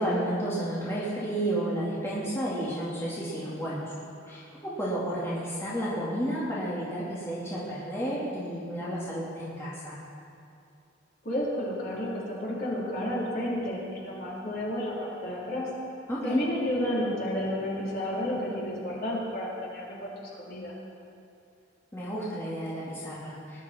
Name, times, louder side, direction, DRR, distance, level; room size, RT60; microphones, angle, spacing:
voice 1, 0.0-3.8 4.3-10.0 16.1-16.4 21.9-23.6, right 1 dB, 15° left, -8 dB, 2.5 m, -31 dB
voice 2, 11.2-15.7 16.2-20.7, left 1 dB, 50° left, -6 dB, 3.9 m, -31 dB
20.0 x 11.0 x 4.5 m, 2.5 s
head